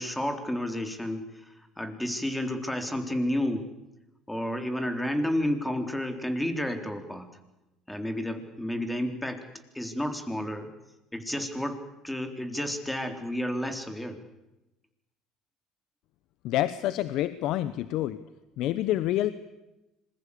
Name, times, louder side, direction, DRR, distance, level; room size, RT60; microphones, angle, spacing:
voice 1, 0.0-3.7 4.3-7.3 7.9-9.4 9.7-10.7 11.1-14.2, left 1 dB, 5° left, 7 dB, 3.8 m, -31 dB
voice 2, 16.4-18.2 18.6-19.3, left 14 dB, 70° left, 14 dB, 1.0 m, -27 dB
26.0 x 21.5 x 8.5 m, 0.98 s
supercardioid pair, 90°, 0 cm